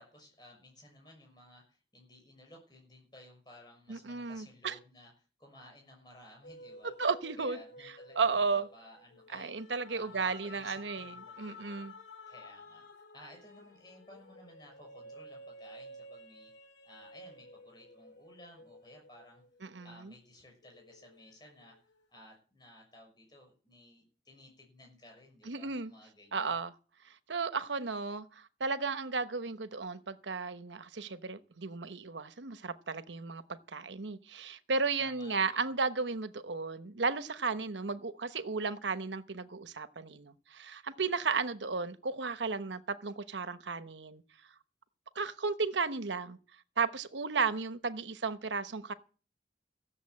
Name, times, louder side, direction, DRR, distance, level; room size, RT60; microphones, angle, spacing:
voice 1, 0.0-5.1 5.4-6.9 7.4-9.5 9.9-11.9 12.3-12.8 13.1-16.5 16.8-19.4 19.8-26.5 34.9-35.7, left 1 dB, 25° left, 6.2 m, -56 dB
voice 2, 3.9-4.7 6.8-7.6 8.2-8.7 9.3-11.9 19.6-20.1 25.4-25.9 26.3-26.7 27.0-44.2 45.1-46.4 46.8-48.9, right 4 dB, 85° right, 1.0 m, -34 dB
sound 1, 6.4-20.2 20.6-22.3, left 1 dB, 90° left, 2.1 m, -53 dB
15.5 x 7.2 x 8.4 m
head